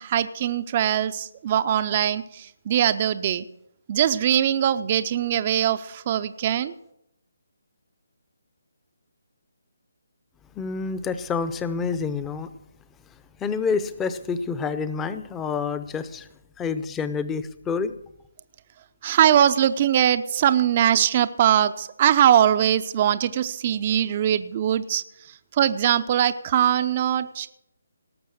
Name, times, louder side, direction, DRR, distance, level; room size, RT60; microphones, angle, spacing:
voice 1, 0.0-3.5 3.9-6.7 19.0-25.0 25.6-27.5, right 10 dB, 35° right, 11 dB, 0.5 m, -21 dB
voice 2, 10.5-12.5 13.4-16.3 16.6-17.9, left 5 dB, 10° left, 13 dB, 0.7 m, -28 dB
18.0 x 6.8 x 6.4 m, 0.79 s
figure-of-eight pair, 155°, 0 cm